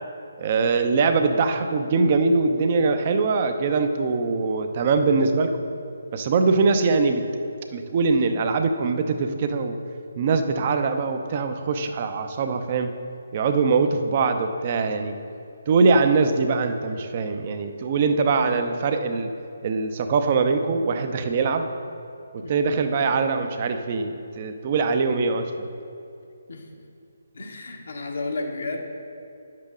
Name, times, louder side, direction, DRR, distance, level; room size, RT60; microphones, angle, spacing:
voice 1, 0.4-5.5 6.1-7.2 7.7-9.8 10.2-12.9 13.3-15.2 15.7-19.3 19.6-21.7 22.5-25.7, right 4 dB, 35° right, 7 dB, 0.7 m, -22 dB
voice 2, 27.3-28.8, left 3 dB, 60° left, 1 dB, 1.3 m, -32 dB
10.5 x 7.6 x 3.8 m, 2.6 s
figure-of-eight pair, 140°, 0 cm